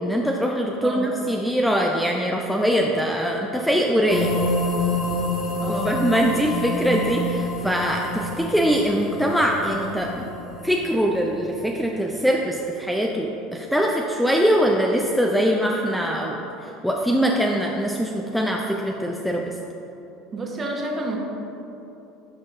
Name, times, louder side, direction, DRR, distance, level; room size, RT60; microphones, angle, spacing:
voice 1, 0.0-4.3 5.7-10.3 10.6-16.4 16.8-19.4, equal, ahead, 0 dB, 0.5 m, -22 dB
sound 1, 4.1-11.8, left 2 dB, 35° left, 1.1 m, -28 dB
voice 2, 5.6-6.0 20.3-21.2, right 2 dB, 30° right, 0 dB, 1.2 m, -29 dB
10.5 x 5.2 x 2.6 m, 3.0 s
hypercardioid pair, 75°, 0 cm